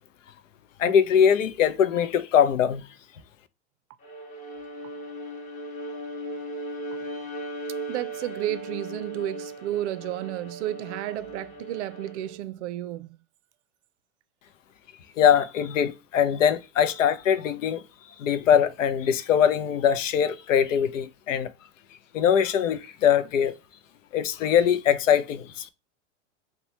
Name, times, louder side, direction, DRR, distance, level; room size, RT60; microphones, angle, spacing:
voice 1, 0.8-2.8 15.2-17.8 18.2-21.5 22.1-23.5 24.1-25.7, left 8 dB, 85° left, 0.5 m, -22 dB
Bowed string instrument, 4.0-12.4, right 1 dB, 20° left, 0.7 m, -37 dB
voice 2, 7.9-13.2, right 13 dB, 65° right, 0.5 m, -32 dB
2.9 x 2.2 x 4.2 m
hypercardioid pair, 100°, 37 cm